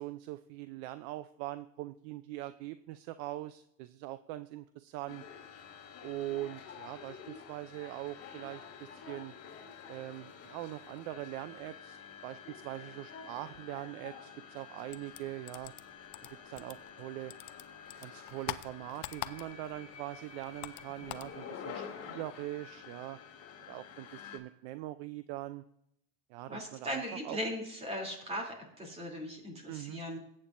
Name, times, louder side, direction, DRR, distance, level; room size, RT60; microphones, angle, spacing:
voice 1, 0.0-5.2 6.0-9.3 9.9-15.7 16.4-17.3 18.0-23.2 23.7-25.6 26.3-27.4 29.7-30.0, right 15 dB, 50° right, 13 dB, 0.5 m, -42 dB
sound 1, 5.1-24.4, left 6 dB, 35° left, 2.3 m, -49 dB
sound 2, 14.9-17.0 17.3-19.8 20.1-21.4, left 17 dB, 50° left, 0.6 m, -43 dB
voice 2, 26.5-30.2, equal, 15° right, 1 dB, 2.9 m, -38 dB
19.0 x 8.8 x 2.6 m, 0.78 s
supercardioid pair, 135°, 41 cm